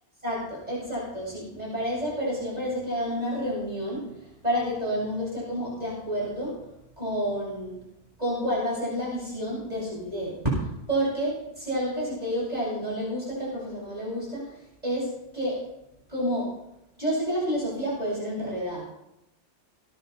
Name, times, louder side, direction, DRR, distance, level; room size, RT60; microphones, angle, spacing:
voice 1, 0.2-4.0 4.4-6.5 7.0-7.8 8.2-10.5 10.9-14.5 14.8-15.6 16.1-16.5 17.0-18.8, equal, 35° right, -6 dB, 7.5 m, -29 dB
21.0 x 10.5 x 4.4 m, 0.86 s
omnidirectional pair, 1.1 m